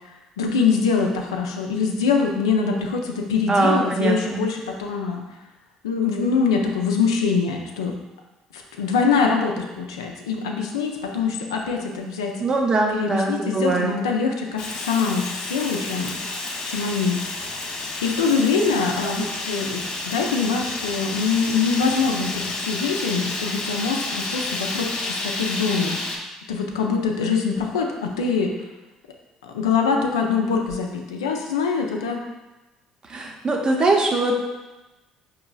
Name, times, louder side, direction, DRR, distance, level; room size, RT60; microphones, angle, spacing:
voice 1, 0.4-5.2 5.8-7.9 8.5-12.3 12.9-16.2 16.6-17.2 18.0-26.0 26.5-28.5 29.4-32.2, left 5 dB, 85° left, 2 dB, 0.4 m, -24 dB
voice 2, 3.5-4.4 12.4-13.9 33.1-34.4, right 2 dB, 35° right, 1 dB, 0.7 m, -21 dB
Fire, 14.6-26.2, left 2 dB, 40° left, 0.7 m, -30 dB
4.6 x 3.0 x 2.3 m, 1.1 s
hypercardioid pair, 60°, 3 cm